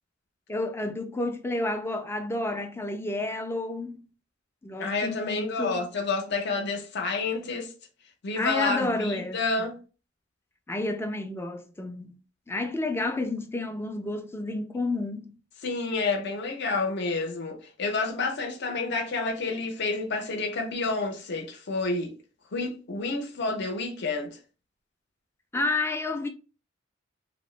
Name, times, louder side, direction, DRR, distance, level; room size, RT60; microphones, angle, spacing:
voice 1, 0.5-4.0 4.6-5.9 8.4-9.7 10.7-12.2 12.5-15.3 25.5-26.3, left 2 dB, 10° left, 0.3 m, -30 dB
voice 2, 4.8-7.7 8.2-9.8 15.6-22.1 22.5-24.3, left 3 dB, 60° left, 0.7 m, -29 dB
2.9 x 2.0 x 3.1 m
head